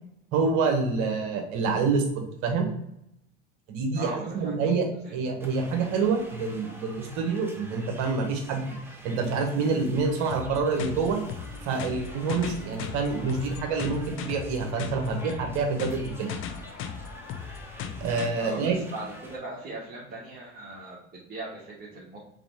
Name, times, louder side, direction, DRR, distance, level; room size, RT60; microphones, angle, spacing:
voice 1, 0.3-2.7 3.7-4.9 5.1-8.7 9.0-11.2 11.6-16.3 18.0-18.7, right 4 dB, 55° right, 4 dB, 1.1 m, -27 dB
voice 2, 3.9-4.7 5.0-5.1 18.4-22.2, right 2 dB, 25° right, -5 dB, 1.4 m, -39 dB
sound 1, 5.4-19.4, right 1 dB, 5° right, 0.9 m, -48 dB
sound 2, 10.3-18.3, left 7 dB, 35° left, 0.5 m, -38 dB
4.1 x 3.6 x 3.3 m, 0.80 s
hypercardioid pair, 75°, 36 cm